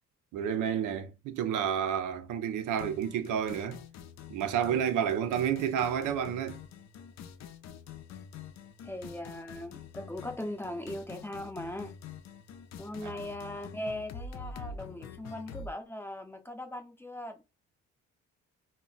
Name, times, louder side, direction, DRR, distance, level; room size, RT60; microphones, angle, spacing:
voice 1, 0.3-3.8 4.3-6.6 13.0-13.2, right 8 dB, 80° right, 0.5 m, -30 dB
sound 1, 2.8-15.7, left 6 dB, 60° left, 0.5 m, -46 dB
voice 2, 8.8-11.9 12.8-17.4, left 1 dB, 10° left, 0.5 m, -39 dB
2.1 x 2.1 x 3.8 m
cardioid pair, 90°, 30 cm